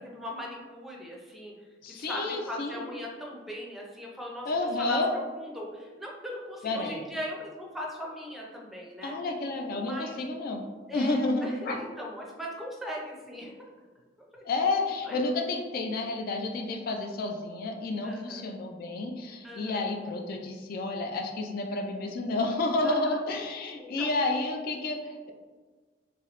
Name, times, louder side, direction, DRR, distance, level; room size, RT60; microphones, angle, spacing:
voice 1, 0.1-1.5 1.9-4.5 4.9-9.1 9.8-10.1 10.9-13.7 14.3-14.4 15.1-15.2 18.0-18.5 19.4-19.8 22.8-23.2 23.8-24.1, equal, ahead, -2 dB, 0.5 m, -39 dB
voice 2, 1.8-2.9 4.5-5.1 6.6-7.0 9.0-10.6 10.9-11.8 14.4-25.3, left 2 dB, 55° left, 3 dB, 0.3 m, -30 dB
3.0 x 2.7 x 2.9 m, 1.4 s
head